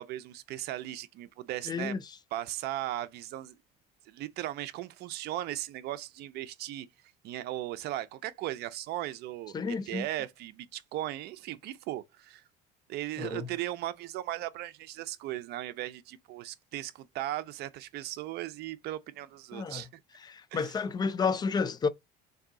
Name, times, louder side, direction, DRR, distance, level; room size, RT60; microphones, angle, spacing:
voice 1, 0.0-2.0 2.3-3.6 4.1-6.9 7.2-9.5 9.9-12.4 12.9-19.9 20.5-20.7, right 14 dB, 60° right, 0.5 m, -37 dB
voice 2, 1.7-2.0 9.5-10.1 13.2-13.5 19.5-19.8 20.2-21.9, left 5 dB, 20° left, 0.3 m, -31 dB
3.5 x 2.7 x 3.9 m
cardioid pair, 120°, 19 cm